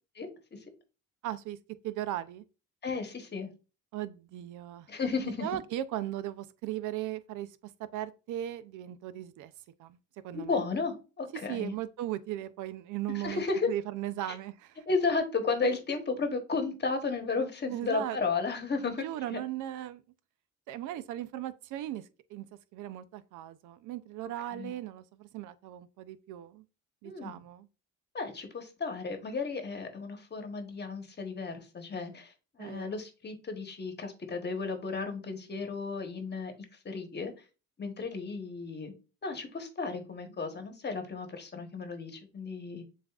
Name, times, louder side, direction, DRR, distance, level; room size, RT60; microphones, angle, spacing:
voice 1, 0.1-0.6 2.8-3.5 4.9-5.5 10.3-11.7 13.1-13.7 14.9-19.4 24.5-24.7 27.0-27.4 28.1-36.5 36.8-37.3 37.8-38.9 39.2-42.8, left 4 dB, 35° left, 1.0 m, -34 dB
voice 2, 1.2-1.6 1.8-2.4 3.9-4.9 5.4-7.5 7.9-9.5 9.8-10.0 10.2-10.6 11.5-14.8 17.6-18.2 18.8-20.0 20.7-22.5 22.7-26.6 27.0-27.7 32.6-33.0, right 13 dB, 80° right, 0.5 m, -37 dB
7.1 x 2.5 x 2.3 m
cardioid pair, 90°, 30 cm